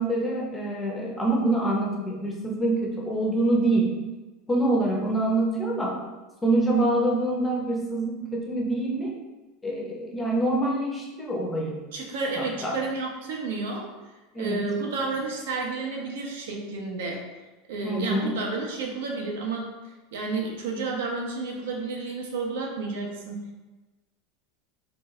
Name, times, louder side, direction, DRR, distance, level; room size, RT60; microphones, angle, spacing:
voice 1, 0.0-4.0 4.5-6.0 6.4-9.1 9.6-11.8 12.4-12.8 14.3-14.7 17.8-18.4, right 2 dB, 10° left, -2 dB, 0.6 m, -25 dB
voice 2, 11.9-13.9 14.4-17.2 17.7-19.7 20.1-23.6, right 3 dB, 90° right, 0 dB, 0.8 m, -31 dB
3.8 x 2.4 x 3.8 m, 1.2 s
supercardioid pair, 170°, 0 cm